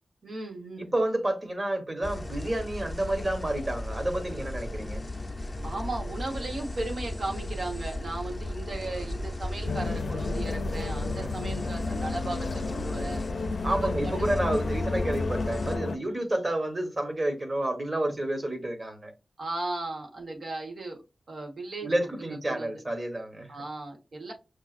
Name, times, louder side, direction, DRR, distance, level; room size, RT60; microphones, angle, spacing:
voice 1, 0.2-0.9 4.8-4.9 5.6-13.2 13.7-14.4 16.3-16.5 19.4-21.0 21.3-21.9 22.2-22.8 23.5-24.3, right 2 dB, 70° right, 1.1 m, -36 dB
voice 2, 0.8-5.0 11.2-11.3 13.6-19.1 21.8-23.5, right 1 dB, 35° right, 1.1 m, -30 dB
sound 1, 2.0-15.8, left 1 dB, 25° left, 0.6 m, -35 dB
sound 2, 9.6-16.0, left 3 dB, 90° left, 0.4 m, -32 dB
6.2 x 2.4 x 2.4 m
wide cardioid pair, 95°, 0 cm